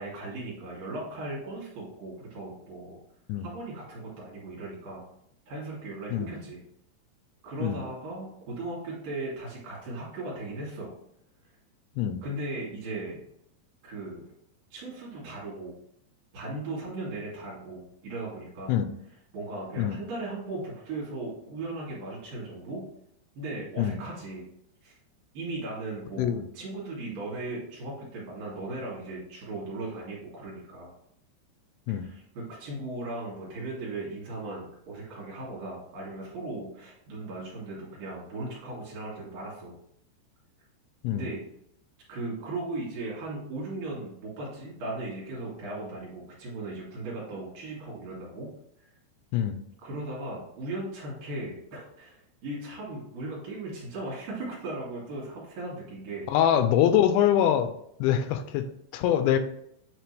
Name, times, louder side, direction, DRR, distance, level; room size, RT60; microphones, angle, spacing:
voice 1, 0.0-3.0 3.3-5.0 5.5-6.6 7.4-10.9 12.2-13.2 13.8-14.2 14.7-15.8 16.3-18.7 19.3-22.8 23.3-24.4 24.8-25.0 25.3-30.9 31.9-39.8 41.1-41.5 42.1-48.5 49.8-56.4, right 2 dB, 55° right, -6 dB, 3.3 m, -37 dB
voice 2, 56.3-57.7 58.0-58.6 58.9-59.4, left 10 dB, 85° left, 9 dB, 2.8 m, -24 dB
9.0 x 3.4 x 3.3 m, 0.74 s
omnidirectional pair, 5.2 m